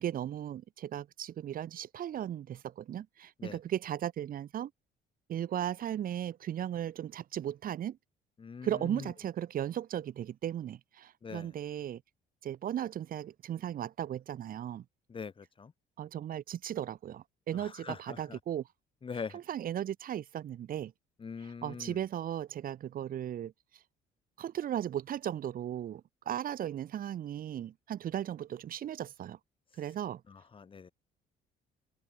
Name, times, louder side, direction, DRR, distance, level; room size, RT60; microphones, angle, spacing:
voice 1, 0.0-4.7 5.3-8.0 8.6-12.0 12.4-14.8 16.0-18.6 19.3-20.9 21.4-23.5 24.4-29.4 29.8-30.2, right 10 dB, 55° right, 5.1 m, -36 dB
voice 2, 8.4-9.1 11.2-11.5 15.1-15.7 17.5-18.4 19.0-19.4 21.2-22.0 30.3-30.9, left 5 dB, 30° left, 4.0 m, -43 dB
open air
cardioid pair, 110°, 17 cm